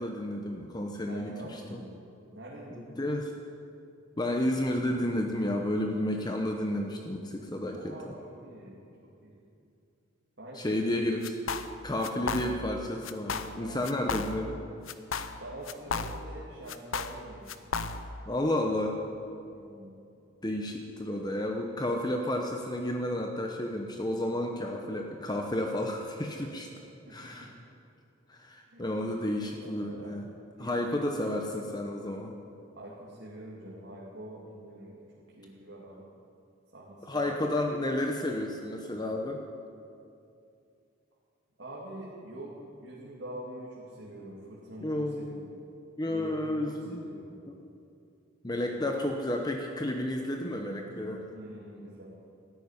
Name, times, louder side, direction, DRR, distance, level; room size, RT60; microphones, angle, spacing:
voice 1, 0.0-1.8 3.0-3.3 4.2-8.1 10.5-11.3 11.8-14.6 18.3-19.0 20.4-26.7 27.1-27.5 28.3-30.3 30.6-32.3 37.1-39.4 44.8-45.5 46.0-47.1 48.4-51.2, left 1 dB, 20° left, 2 dB, 0.9 m, -31 dB
voice 2, 1.1-3.0 7.7-8.8 9.0-9.3 10.4-11.1 12.1-12.5 13.6-14.5 15.4-17.7 19.5-20.0 27.1-27.5 28.7-28.9 29.6-30.2 30.6-31.0 32.7-35.0 35.4-36.0 36.7-37.4 41.6-45.4 46.1-47.4 48.6-48.9 51.3-52.1, right 1 dB, 65° right, -5 dB, 2.5 m, -45 dB
sound 1, 11.2-11.8 12.0-12.8 13.0-13.6 13.8-14.6 14.9-16.4 16.7-18.2, left 5 dB, 85° left, 0.8 m, -34 dB
13.5 x 10.5 x 9.7 m, 2.6 s
head